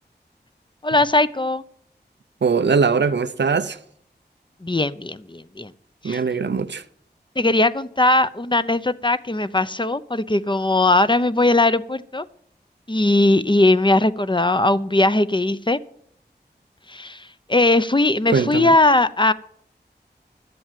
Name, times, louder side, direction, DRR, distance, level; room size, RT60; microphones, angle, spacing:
voice 1, 0.8-1.6 4.6-5.7 6.0-6.2 7.4-12.3 12.9-15.8 16.9-19.3, left 2 dB, 25° left, 0.7 m, -19 dB
voice 2, 2.4-3.8 6.0-6.8 18.3-18.7, right 5 dB, 90° right, 0.7 m, -21 dB
12.5 x 7.8 x 7.5 m
wide cardioid pair, 45°, 18 cm